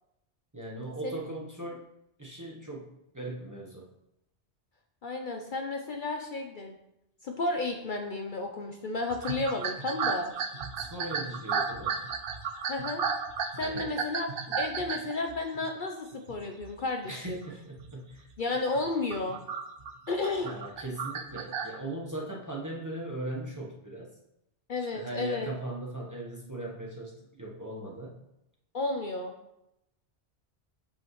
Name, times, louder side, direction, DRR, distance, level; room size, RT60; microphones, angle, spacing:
voice 1, 0.5-1.9 2.2-3.9 10.8-12.0 13.6-14.0 14.5-14.6 17.1-18.3 20.4-24.1 24.8-28.2, right 1 dB, 15° right, -3 dB, 1.0 m, -39 dB
voice 2, 5.0-6.8 7.2-10.3 12.7-13.0 13.6-14.3 14.6-17.4 18.4-19.4 20.1-20.5 24.7-25.5 28.7-29.3, left 2 dB, 55° left, 3 dB, 0.7 m, -32 dB
sound 1, 9.1-15.7 16.3-16.7 17.1-17.4 17.8-17.9 18.6-21.8, right 6 dB, 60° right, 0.8 m, -34 dB
8.4 x 5.6 x 3.1 m, 0.85 s
omnidirectional pair, 1.2 m